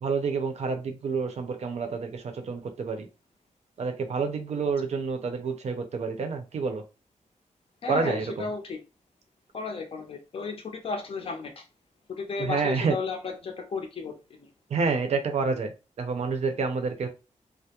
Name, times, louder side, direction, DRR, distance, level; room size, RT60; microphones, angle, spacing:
voice 1, 0.0-3.1 3.8-6.8 7.9-8.5 12.4-13.0 14.7-15.7 16.0-17.1, right 4 dB, 60° right, 0.5 m, -28 dB
voice 2, 7.8-8.8 9.5-11.6 12.1-14.5, left 4 dB, 45° left, 0.5 m, -34 dB
2.3 x 2.0 x 2.8 m
wide cardioid pair, 170°, 13 cm